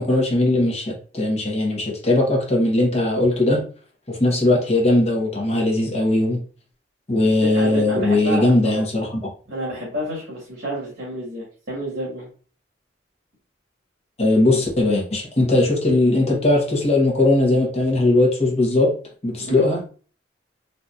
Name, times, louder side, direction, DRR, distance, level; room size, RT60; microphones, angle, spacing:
voice 1, 0.0-3.6 4.1-6.4 7.1-9.2 14.2-18.9 19.2-19.8, left 2 dB, 35° left, -1 dB, 1.1 m, -19 dB
voice 2, 7.4-8.8 9.5-12.3 19.4-19.7, right 1 dB, 65° right, -6 dB, 1.7 m, -29 dB
4.0 x 2.9 x 2.4 m, 0.39 s
head